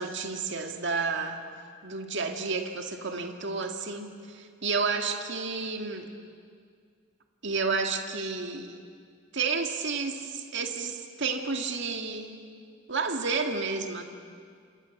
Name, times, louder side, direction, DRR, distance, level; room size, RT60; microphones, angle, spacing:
voice 1, 0.0-1.4 1.8-6.1 7.4-8.8 9.3-12.3 12.9-14.0, right 4 dB, 65° right, 4 dB, 2.2 m, -31 dB
28.0 x 27.0 x 7.3 m, 2.1 s
head